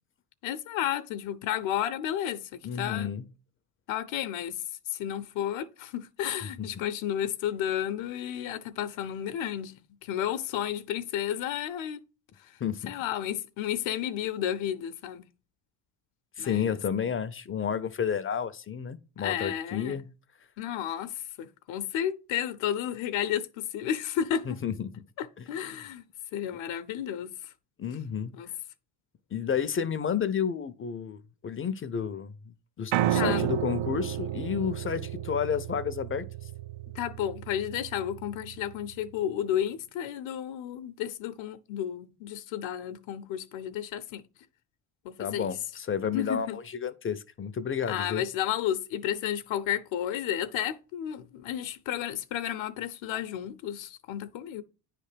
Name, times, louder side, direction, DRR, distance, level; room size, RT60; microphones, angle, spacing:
voice 1, 0.4-3.1 3.9-4.6 4.9-9.7 10.0-12.0 12.4-12.5 12.9-15.2 16.4-16.8 19.2-20.0 20.6-24.5 25.2-26.0 26.3-27.3 28.3-28.5 33.0-33.5 36.9-44.2 45.0-45.5 46.1-46.6 47.9-54.6, left 10 dB, 70° left, 0.8 m, -32 dB
voice 2, 2.6-3.2 6.6-6.7 12.6-12.9 16.4-20.1 24.4-24.9 25.4-25.5 27.8-28.3 29.3-36.3 45.2-48.2, left 7 dB, 25° left, 0.5 m, -31 dB
Piano, 32.9-39.1, right 12 dB, 70° right, 0.7 m, -32 dB
9.4 x 3.3 x 5.0 m
cardioid pair, 100°, 49 cm